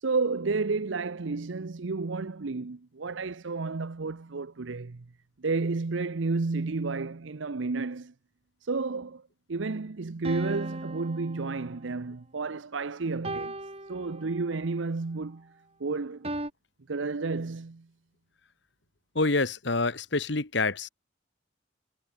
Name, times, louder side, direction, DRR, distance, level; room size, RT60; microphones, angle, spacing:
voice 1, 0.0-5.1 5.4-8.1 8.6-9.2 9.5-13.6 13.9-15.5 15.8-16.3 16.9-17.9, right 3 dB, 80° right, 0.7 m, -31 dB
sound 1, 10.2-12.0 13.2-14.7 16.2-16.5, right 1 dB, 30° right, 7.2 m, -38 dB
voice 2, 19.1-20.9, left 3 dB, 65° left, 1.7 m, -27 dB
head